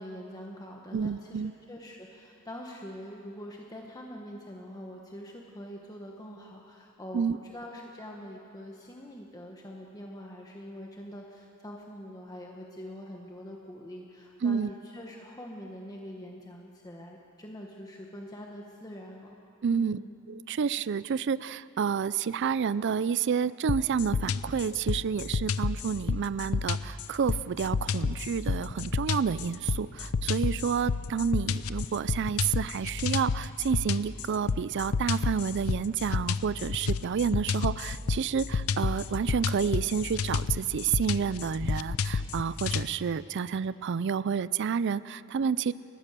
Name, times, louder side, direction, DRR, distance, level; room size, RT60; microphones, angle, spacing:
voice 1, 0.0-1.4 1.7-19.4 19.7-20.1, equal, 15° left, 0 dB, 1.4 m, -44 dB
voice 2, 0.9-1.5 7.1-7.4 14.4-14.7 19.6-20.0 20.3-45.7, right 6 dB, 55° right, 17 dB, 0.4 m, -29 dB
sound 1, 23.7-42.9, left 5 dB, 70° left, 0.6 m, -30 dB
29.5 x 15.0 x 6.8 m, 2.7 s
head